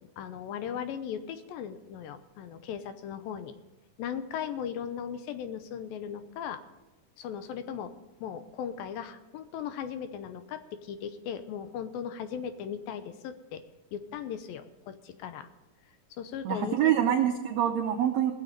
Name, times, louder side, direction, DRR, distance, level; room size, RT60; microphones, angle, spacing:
voice 1, 0.2-3.6 4.0-6.6 7.2-7.9 8.2-13.6 13.9-15.5 16.2-17.0, left 8 dB, 85° left, 11 dB, 2.6 m, -37 dB
voice 2, 16.4-18.3, right 10 dB, 85° right, 5 dB, 1.5 m, -25 dB
20.0 x 7.4 x 5.2 m, 1.0 s
omnidirectional pair, 4.0 m